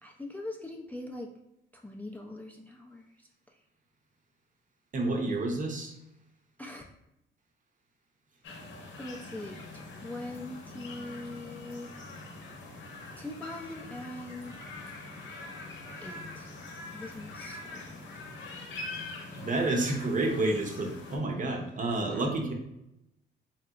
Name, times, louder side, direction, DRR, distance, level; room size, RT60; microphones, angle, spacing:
voice 1, 0.0-1.3 1.7-3.6 6.6-6.9 9.0-11.9 13.2-14.7 16.0-16.5 16.9-18.1 22.1-22.3, left 2 dB, 10° left, 1 dB, 0.3 m, -42 dB
voice 2, 4.9-5.9 17.7-17.8 19.4-22.5, right 2 dB, 40° right, 2 dB, 0.6 m, -29 dB
sound 1, 8.4-21.2, left 2 dB, 75° left, 0.8 m, -44 dB
3.2 x 2.8 x 2.3 m, 0.86 s
cardioid pair, 90°, 20 cm